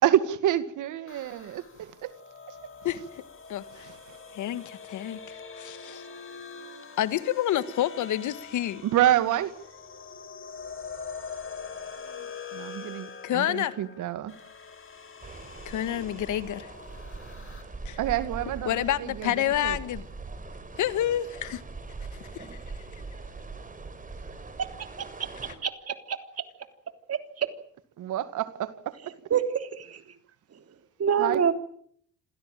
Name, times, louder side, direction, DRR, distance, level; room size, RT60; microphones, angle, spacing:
voice 1, 0.0-2.1 3.8-4.2 8.8-9.5 12.5-14.3 18.0-19.8 28.0-29.1 31.2-31.5, right 12 dB, 80° right, 2.2 m, -28 dB
sound 1, 1.1-17.6, left 5 dB, 45° left, 6.0 m, -44 dB
voice 2, 3.5-3.9 4.3-6.0 7.0-8.8 13.2-13.7 15.6-16.7 17.8-18.0 18.6-20.0 20.8-21.6 22.3-22.5, left 12 dB, 80° left, 1.7 m, -28 dB
sound 2, 15.2-25.5, right 3 dB, 25° right, 4.6 m, -41 dB
voice 3, 25.6-26.4 27.1-27.5 29.3-30.0 31.0-31.5, right 7 dB, 55° right, 3.4 m, -27 dB
27.0 x 17.0 x 9.1 m
cardioid pair, 90°, 30 cm